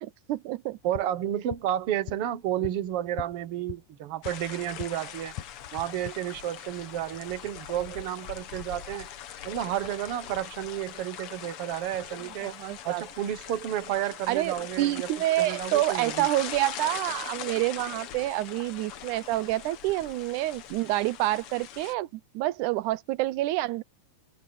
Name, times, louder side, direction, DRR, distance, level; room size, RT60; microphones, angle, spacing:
voice 1, 0.0-0.8 12.4-13.0 14.3-23.8, right 16 dB, 90° right, 2.1 m, -28 dB
sound 1, 0.7-5.0 5.3-6.1, left 14 dB, 80° left, 2.4 m, -42 dB
voice 2, 0.8-5.3 5.7-9.1 9.4-12.6 12.9-15.1 15.4-16.3, right 12 dB, 55° right, 1.9 m, -31 dB
sound 2, 4.2-21.9, left 10 dB, 60° left, 1.7 m, -41 dB
omnidirectional pair, 3.5 m